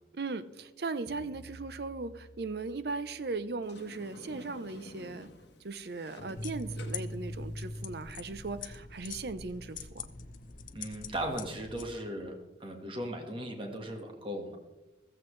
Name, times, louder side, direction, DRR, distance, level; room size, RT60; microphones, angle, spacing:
voice 1, 0.1-5.3 5.6-10.1, right 3 dB, 60° right, 13 dB, 0.6 m, -38 dB
sound 1, 1.1-3.8, right 1 dB, 90° right, 5.3 m, -54 dB
Sliding door, 3.6-8.8, left 1 dB, 65° left, 1.3 m, -52 dB
sound 2, 6.4-11.9, left 3 dB, 45° left, 0.7 m, -42 dB
voice 2, 10.7-12.3 12.6-14.6, right 1 dB, 30° right, 3 dB, 1.6 m, -37 dB
14.5 x 14.5 x 3.2 m, 1.1 s
head